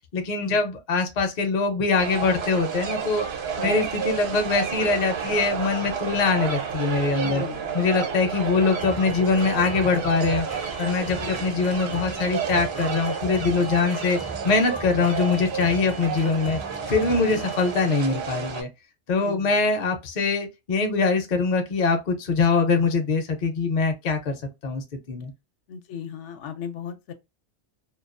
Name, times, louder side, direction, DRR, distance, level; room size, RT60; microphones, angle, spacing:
voice 1, 0.1-3.2 3.6-7.4 7.7-10.5 10.8-14.2 14.4-16.6 16.9-18.7 19.1-25.3, left 4 dB, 50° left, 0.6 m, -23 dB
sound 1, 2.0-18.6, right 6 dB, 65° right, 0.9 m, -31 dB
sound 2, 6.9-18.2, right 1 dB, 20° right, 0.4 m, -41 dB
voice 2, 7.2-7.8 11.1-11.4 17.2-17.4 19.2-19.5 25.7-27.1, left 6 dB, 75° left, 0.9 m, -36 dB
2.3 x 2.3 x 2.4 m
omnidirectional pair, 1.2 m